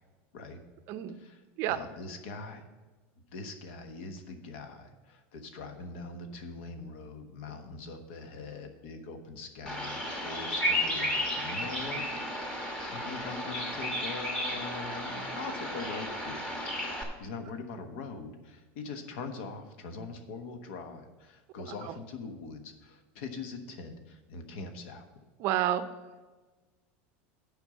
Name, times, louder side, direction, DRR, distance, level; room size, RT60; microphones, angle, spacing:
voice 1, 1.1-2.6 3.3-12.0 12.3-16.4 16.8-25.1, left 4 dB, 70° left, 7 dB, 1.2 m, -42 dB
Bird vocalization bird call bird song, 9.7-17.0, equal, 15° left, 1.2 m, -33 dB
voice 2, 25.4-25.9, right 12 dB, 45° right, 10 dB, 0.5 m, -28 dB
8.1 x 5.3 x 7.2 m, 1.3 s
supercardioid pair, 170°, 6 cm